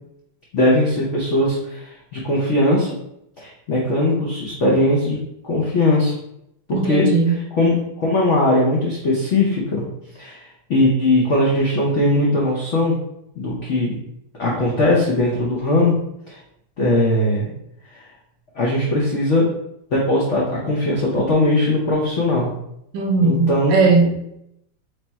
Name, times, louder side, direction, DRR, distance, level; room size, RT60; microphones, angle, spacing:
voice 1, 0.5-3.0 3.4-5.2 5.4-6.1 6.7-7.0 7.6-9.8 10.2-10.4 10.7-13.0 13.4-13.9 14.4-16.0 16.3-16.4 16.8-17.5 17.9-18.0 18.5-19.5 19.9-22.5 23.2-23.7, left 1 dB, 80° left, -3 dB, 0.6 m, -19 dB
voice 2, 6.7-7.4 22.9-24.2, right 4 dB, 70° right, 2 dB, 1.2 m, -18 dB
3.3 x 3.3 x 4.1 m, 0.78 s
omnidirectional pair, 2.4 m